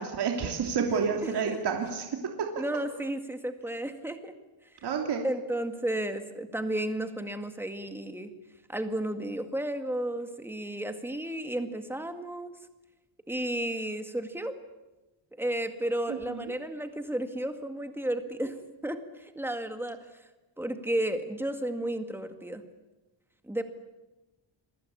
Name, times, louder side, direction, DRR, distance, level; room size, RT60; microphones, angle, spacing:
voice 1, 0.0-2.1 4.8-5.3 16.1-16.4, right 6 dB, 55° right, 2 dB, 3.1 m, -29 dB
voice 2, 1.2-1.6 2.6-4.3 5.2-8.3 8.7-12.6 13.3-14.6 15.4-20.2 20.6-22.6 23.4-23.6, right 1 dB, 5° right, 7 dB, 2.0 m, -33 dB
28.0 x 23.0 x 8.6 m, 1.1 s
wide cardioid pair, 175°, 47 cm